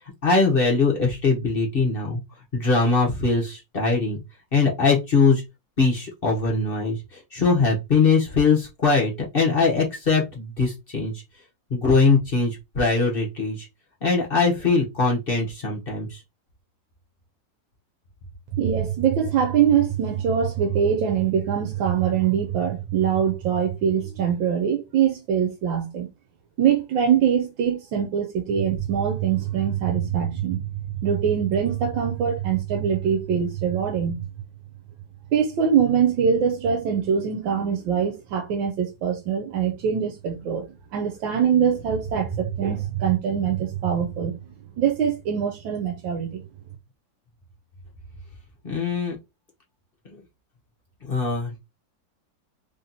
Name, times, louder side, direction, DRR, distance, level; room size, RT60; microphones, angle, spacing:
voice 1, 0.2-2.2 2.5-4.2 4.5-5.4 5.8-11.1 11.7-13.7 14.0-16.2 48.6-49.2 50.1-50.2 51.0-51.6, left 4 dB, 40° left, 0.8 m, -21 dB
voice 2, 18.5-26.1 26.6-34.3 35.3-40.7 40.9-44.3 44.8-46.4, right 8 dB, 80° right, 1.4 m, -23 dB
3.4 x 2.8 x 3.8 m
omnidirectional pair, 2.1 m